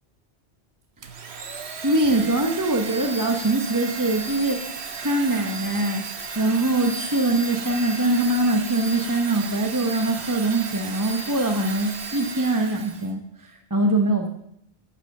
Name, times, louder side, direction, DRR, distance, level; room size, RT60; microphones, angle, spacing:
Domestic sounds home sounds, 1.0-13.1, right 5 dB, 70° right, 1.4 m, -35 dB
voice 1, 1.8-4.6 5.0-6.0 6.4-14.3, right 2 dB, 20° right, 3 dB, 1.0 m, -23 dB
12.0 x 9.1 x 6.6 m, 0.73 s
omnidirectional pair, 1.1 m